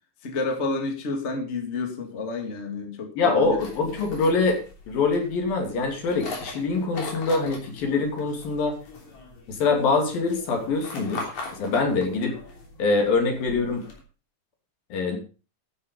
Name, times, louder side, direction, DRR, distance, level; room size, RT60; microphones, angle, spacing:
voice 1, 0.2-3.6, left 3 dB, 25° left, 3 dB, 2.0 m, -30 dB
voice 2, 3.2-8.8 9.5-11.3 11.6-12.4 12.8-13.8 14.9-15.2, left 4 dB, 80° left, 3 dB, 4.6 m, -24 dB
sound 1, 3.4-14.0, left 3 dB, 55° left, 4.5 m, -41 dB
12.0 x 9.7 x 5.3 m, 0.35 s
omnidirectional pair, 4.0 m